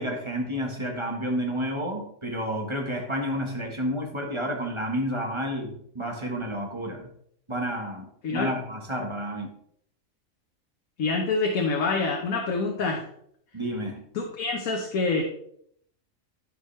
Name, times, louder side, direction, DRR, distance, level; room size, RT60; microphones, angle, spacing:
voice 1, 0.0-7.1 7.5-9.6 13.5-14.0, equal, 20° right, 1.4 m, -30 dB
voice 2, 11.0-13.1 14.1-15.2, left 4 dB, 90° left, 1.6 m, -26 dB
13.0 x 5.2 x 3.3 m
omnidirectional pair, 1.4 m